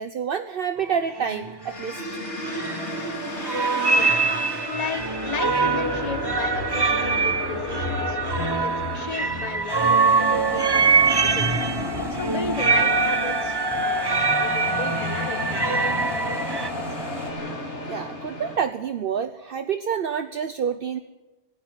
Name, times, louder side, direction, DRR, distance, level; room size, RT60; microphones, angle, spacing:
voice 1, 0.0-2.0 17.8-21.0, right 7 dB, 55° right, 9 dB, 1.0 m, -28 dB
sound 1, 0.8-0.9 1.2-1.5 2.4-3.2 3.4-16.7, right 4 dB, 25° right, 0.8 m, -24 dB
sound 2, 1.6-18.6, left 1 dB, 85° left, 3.3 m, -33 dB
voice 2, 3.9-4.3 4.7-8.2 8.6-11.5 12.1-16.2 16.6-17.0, left 5 dB, 35° left, 9 dB, 1.4 m, -35 dB
sound 3, 9.7-17.3, left 1 dB, ahead, 5.2 m, -35 dB
29.5 x 10.5 x 9.8 m, 1.2 s
omnidirectional pair, 1.2 m